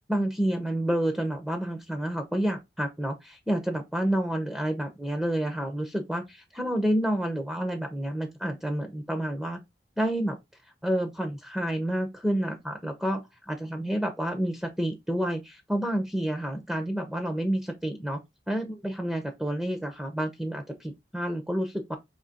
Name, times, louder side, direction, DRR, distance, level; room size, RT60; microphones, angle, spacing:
voice 1, 0.1-6.2 6.5-9.6 10.0-10.4 10.8-13.2 13.5-18.2 18.5-22.0, right 1 dB, 5° right, 0.7 m, -29 dB
5.1 x 2.9 x 2.8 m
head